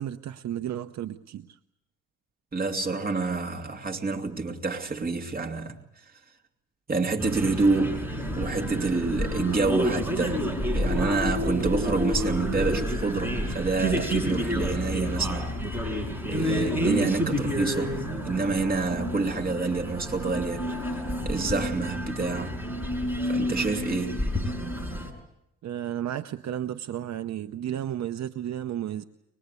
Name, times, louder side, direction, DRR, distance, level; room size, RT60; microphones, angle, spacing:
voice 1, 0.0-1.6 25.6-29.0, right 11 dB, 65° right, 0.8 m, -33 dB
voice 2, 2.5-5.8 6.9-8.1 8.4-15.6 16.3-20.7 21.2-22.7 23.3-24.3, right 3 dB, 30° right, 2.8 m, -28 dB
sound 1, 7.2-25.1, equal, 5° right, 5.6 m, -29 dB
24.0 x 21.0 x 8.3 m
cardioid pair, 90°, 30 cm